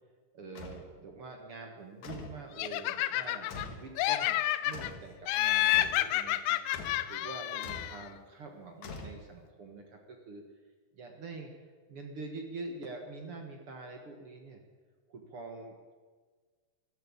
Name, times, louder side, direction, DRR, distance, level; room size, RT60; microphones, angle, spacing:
voice 1, 0.3-6.6 7.1-10.4 10.9-11.5 11.9-14.6 15.1-15.9, right 3 dB, 55° right, 3 dB, 1.6 m, -45 dB
sound 1, 0.6-0.9 2.0-2.4 3.5-3.9 4.7-5.1 5.7-6.1 6.7-7.1 7.6-8.0 8.8-9.5, left 3 dB, 55° left, 2.5 m, -44 dB
Laughter, 2.6-3.7 4.0-4.9 5.3-8.0, left 14 dB, 90° left, 1.9 m, -29 dB
13.5 x 12.0 x 8.6 m, 1.5 s
omnidirectional pair, 4.6 m